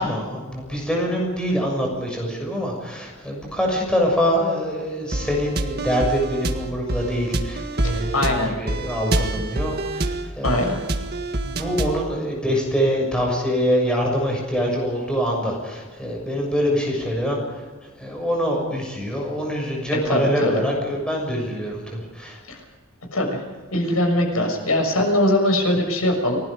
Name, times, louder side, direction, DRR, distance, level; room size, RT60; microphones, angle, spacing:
voice 1, 0.0-10.7 11.4-17.7 18.0-22.4, equal, 5° left, -1 dB, 6.8 m, -24 dB
sound 1, 5.1-12.1, right 2 dB, 45° right, 1.7 m, -27 dB
voice 2, 7.8-8.5 10.4-10.8 20.0-20.6 22.5-22.6 23.1-23.4 23.7-26.4, left 1 dB, 80° left, 3 dB, 6.4 m, -21 dB
30.0 x 20.0 x 5.1 m, 1.4 s
head